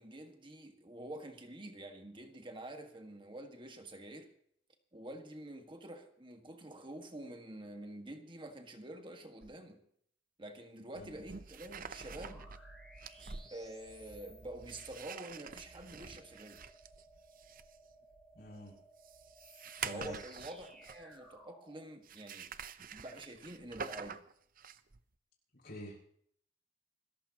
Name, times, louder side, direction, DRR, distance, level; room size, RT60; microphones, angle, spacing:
voice 1, 0.0-4.3 4.9-9.8 10.4-12.5 13.5-16.6 19.9-24.2, right 1 dB, 25° right, 1.7 m, -48 dB
sound 1, 9.4-9.5 11.0-21.3 22.0-25.0, right 6 dB, 50° right, 0.8 m, -47 dB
sound 2, 11.9-21.8, right 1 dB, 5° left, 5.1 m, -59 dB
voice 2, 18.3-18.7 19.8-20.1 25.6-26.1, equal, 55° left, 6.6 m, -47 dB
27.5 x 14.0 x 3.0 m
head